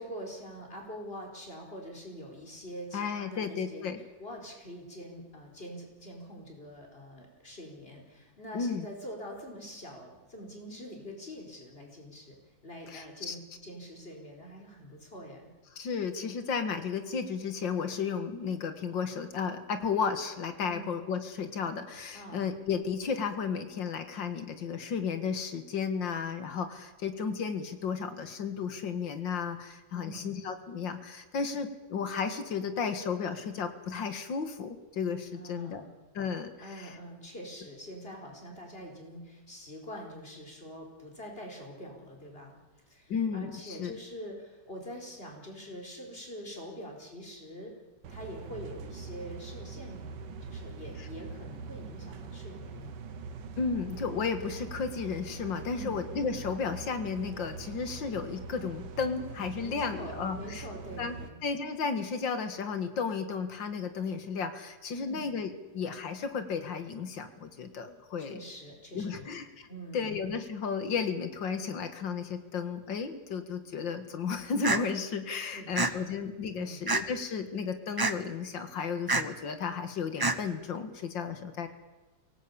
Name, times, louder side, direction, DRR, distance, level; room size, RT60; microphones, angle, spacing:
voice 1, 0.0-3.8 4.2-12.3 12.6-15.5 20.6-20.9 22.1-22.5 29.9-30.4 35.3-35.9 36.6-42.5 42.9-47.7 48.1-53.0 55.7-56.0 59.6-61.4 64.9-65.3 68.2-69.3 69.7-70.1 75.5-75.9 76.5-76.9, equal, 30° left, 1 dB, 4.9 m, -45 dB
voice 2, 2.9-4.0 8.5-8.9 12.9-13.4 15.7-35.8 36.1-37.0 43.1-44.0 51.0-51.1 53.6-60.7 61.0-61.2 61.4-68.4 68.9-69.7 69.9-81.7, left 5 dB, 85° left, 9 dB, 2.4 m, -33 dB
sound 1, 48.0-61.3, right 4 dB, 70° right, 1.8 m, -43 dB
sound 2, 74.6-74.8 75.7-75.9 76.9-77.2 78.0-78.1 79.1-79.2 80.2-80.4, right 3 dB, 20° right, 0.5 m, -26 dB
23.5 x 18.0 x 8.6 m, 1.2 s
omnidirectional pair, 2.0 m